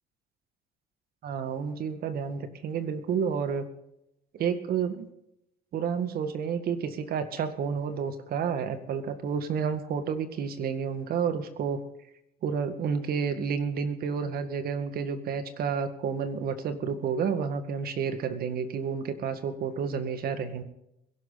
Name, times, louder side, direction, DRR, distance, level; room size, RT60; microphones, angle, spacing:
voice 1, 1.2-3.6 4.3-5.1 5.7-11.8 12.4-20.6, right 6 dB, 65° right, 9 dB, 2.0 m, -30 dB
21.5 x 11.5 x 4.1 m, 0.81 s
cardioid pair, 110°, 17 cm